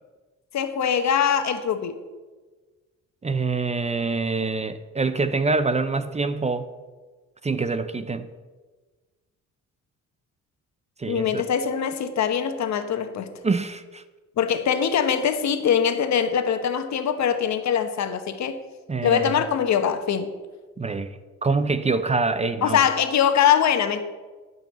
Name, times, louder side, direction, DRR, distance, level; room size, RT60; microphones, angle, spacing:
voice 1, 0.5-1.9 11.1-13.4 14.4-18.6 19.0-20.3 22.6-24.0, left 8 dB, 65° left, 9 dB, 1.2 m, -22 dB
voice 2, 3.2-6.7 7.4-8.3 11.0-11.4 13.4-14.0 18.9-19.4 20.8-22.8, right 3 dB, 20° right, 12 dB, 0.7 m, -25 dB
12.5 x 5.5 x 7.4 m, 1.3 s
cardioid pair, 90°, 30 cm